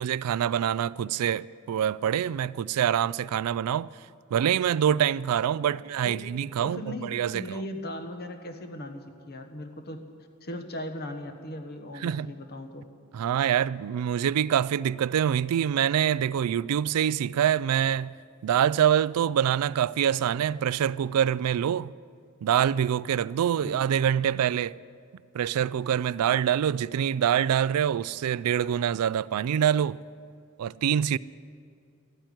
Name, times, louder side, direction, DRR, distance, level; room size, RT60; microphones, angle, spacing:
voice 1, 0.0-3.9 4.3-7.6 12.0-12.3 13.1-18.1 18.4-21.9 22.4-24.8 25.3-30.0 30.6-31.2, right 9 dB, 85° right, 0.3 m, -25 dB
voice 2, 5.6-6.2 6.6-10.0 10.4-12.8 23.6-23.9, left 1 dB, 45° left, 1.2 m, -38 dB
14.5 x 8.8 x 9.4 m
head